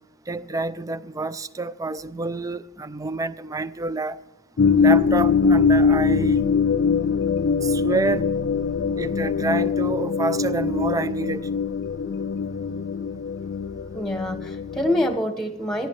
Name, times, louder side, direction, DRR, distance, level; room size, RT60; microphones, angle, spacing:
voice 1, 0.3-4.2 4.8-6.5 7.6-8.2 9.0-11.4, right 3 dB, 15° right, 0.4 m, -28 dB
sound 1, 4.6-15.2, left 5 dB, 55° left, 0.4 m, -22 dB
voice 2, 13.9-15.9, left 1 dB, ahead, 1.2 m, -25 dB
19.5 x 14.0 x 3.2 m
head